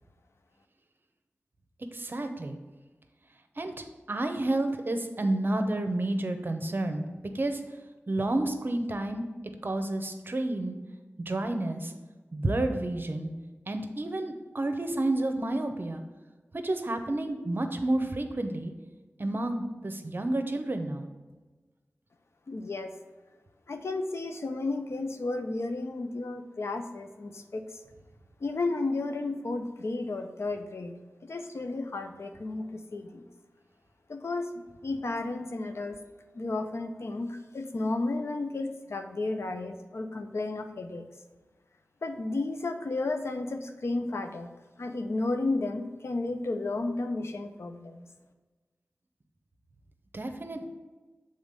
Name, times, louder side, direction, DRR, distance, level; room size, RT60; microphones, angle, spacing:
voice 1, 1.9-2.6 3.6-7.6 8.1-9.3 9.6-10.8 11.3-11.9 12.3-13.3 13.7-16.0 16.5-18.7 19.2-21.1 50.1-50.6, right 2 dB, 50° right, 7 dB, 0.8 m, -30 dB
voice 2, 22.5-22.9 23.7-27.8 28.4-30.9 31.2-33.3 34.1-36.0 36.3-41.1 42.0-44.5 44.8-48.1, left 2 dB, 70° left, 6 dB, 0.6 m, -33 dB
7.2 x 3.8 x 5.2 m, 1.3 s
wide cardioid pair, 55°, 5 cm